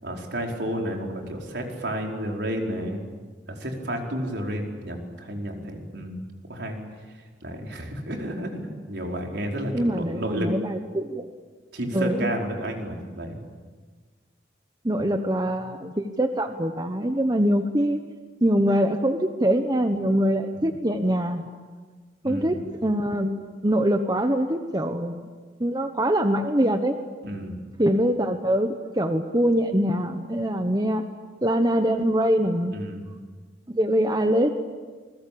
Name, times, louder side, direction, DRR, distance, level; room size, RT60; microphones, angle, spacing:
voice 1, 0.0-3.1 3.5-6.2 6.5-6.8 7.4-10.5 11.7-13.4 20.5-20.7 22.2-22.5 27.2-27.6 32.7-33.1, equal, 70° right, 1 dB, 4.9 m, -31 dB
voice 2, 9.7-11.3 11.9-12.3 14.8-18.0 18.4-21.5 22.2-25.2 25.6-27.0 27.8-31.0 31.4-32.8 33.7-34.5, equal, 20° right, 6 dB, 1.2 m, -23 dB
28.5 x 21.5 x 8.8 m, 1.4 s
head